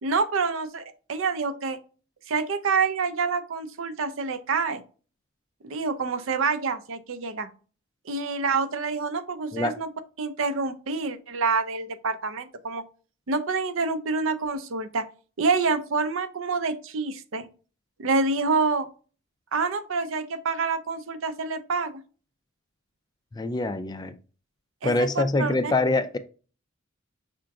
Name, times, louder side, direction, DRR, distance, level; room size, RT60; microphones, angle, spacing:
voice 1, 0.0-0.8 1.1-1.8 2.3-4.8 5.6-7.5 8.1-9.9 10.2-12.8 13.3-15.1 15.4-17.5 18.0-18.9 19.5-22.0 24.8-25.7, right 4 dB, 70° right, 0.5 m, -27 dB
voice 2, 23.3-24.1 24.8-26.2, left 2 dB, 20° left, 0.3 m, -25 dB
5.8 x 3.7 x 2.3 m
head